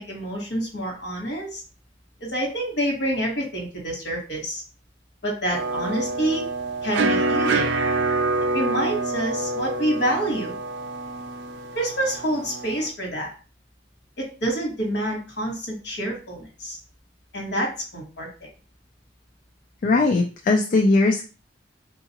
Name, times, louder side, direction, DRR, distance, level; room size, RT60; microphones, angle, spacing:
voice 1, 0.0-1.6 2.2-4.6 5.2-6.4 6.8-7.7 8.5-10.6 11.7-13.3 14.2-16.8 17.3-18.3, right 1 dB, 60° left, 1 dB, 1.2 m, -27 dB
sound 1, 5.5-12.9, right 2 dB, 70° right, 0.4 m, -26 dB
voice 2, 19.8-21.3, left 3 dB, 45° left, 1 dB, 0.4 m, -19 dB
3.7 x 2.4 x 2.8 m, 0.35 s
head